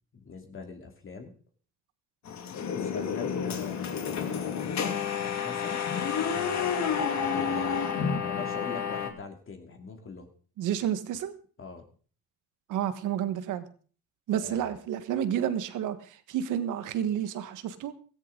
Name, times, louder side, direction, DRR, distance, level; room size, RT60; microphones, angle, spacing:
voice 1, 0.1-1.3 2.7-4.6 5.3-5.8 6.1-7.9 8.2-10.3 11.6-11.9 14.4-14.8, left 4 dB, 45° left, 4 dB, 2.5 m, -43 dB
sound 1, 2.3-9.1, left 7 dB, 65° left, 2.1 m, -30 dB
voice 2, 10.6-11.3 12.7-13.6 14.3-17.9, right 10 dB, 90° right, 11 dB, 1.5 m, -30 dB
16.5 x 14.5 x 3.9 m, 0.40 s
cardioid pair, 90°, 30 cm